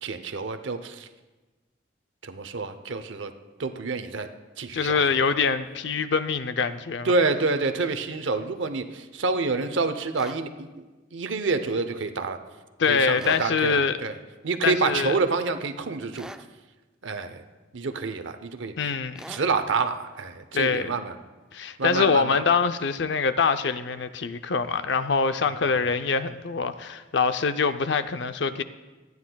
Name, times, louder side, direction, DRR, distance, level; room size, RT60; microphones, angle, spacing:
voice 1, 0.0-1.1 2.2-3.3 3.6-4.3 4.6-5.2 7.0-10.8 11.1-12.4 12.9-14.2 14.4-16.3 17.0-17.4 17.7-18.9 19.3-21.2 21.8-22.4 25.7-25.8, right 4 dB, 80° right, 9 dB, 0.7 m, -28 dB
voice 2, 4.7-7.1 12.8-14.0 14.6-15.1 18.8-19.2 20.5-20.9 21.5-28.6, left 5 dB, 65° left, 11 dB, 0.5 m, -24 dB
sound 1, 10.1-10.4 13.2-13.5 16.1-16.5 19.2-19.5, right 1 dB, 5° right, 0.3 m, -42 dB
25.5 x 9.5 x 2.3 m, 1.2 s
head